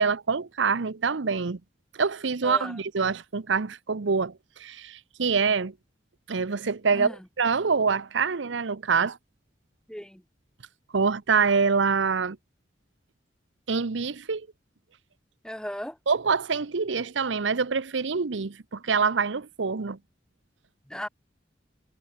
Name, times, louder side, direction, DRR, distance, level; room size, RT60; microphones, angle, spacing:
voice 1, 0.0-1.6 1.9-5.7 6.3-9.2 10.9-12.4 13.7-14.5 16.1-20.0, right 5 dB, 80° right, 0.8 m, -25 dB
voice 2, 2.4-2.8 6.9-7.2 9.9-10.2 15.4-16.0 20.9-21.1, equal, 5° left, 1.3 m, -36 dB
head